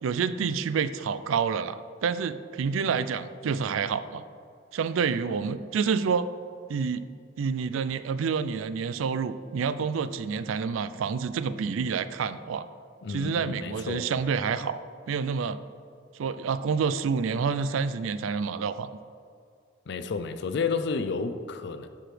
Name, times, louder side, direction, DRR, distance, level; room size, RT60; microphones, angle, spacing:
voice 1, 0.0-4.2 4.7-6.3 6.7-7.0 7.4-12.7 13.1-15.6 16.2-18.9, right 6 dB, 85° right, 13 dB, 0.4 m, -28 dB
voice 2, 13.0-14.1 19.9-21.9, left 4 dB, 60° left, 10 dB, 0.5 m, -31 dB
12.0 x 4.8 x 3.3 m, 2.3 s
head